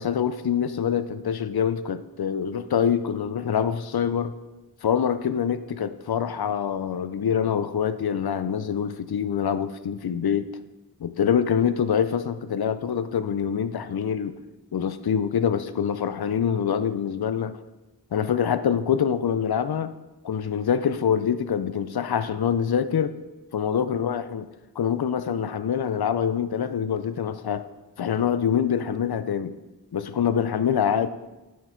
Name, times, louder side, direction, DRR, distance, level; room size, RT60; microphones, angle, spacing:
voice 1, 0.0-4.3 4.8-10.5 11.0-14.3 14.7-17.6 18.1-19.9 20.2-23.1 23.5-24.4 24.8-27.7 28.0-29.6 29.9-31.1, left 8 dB, 70° left, 12 dB, 0.5 m, -25 dB
9.2 x 6.2 x 4.4 m, 1.1 s
wide cardioid pair, 40°, 39 cm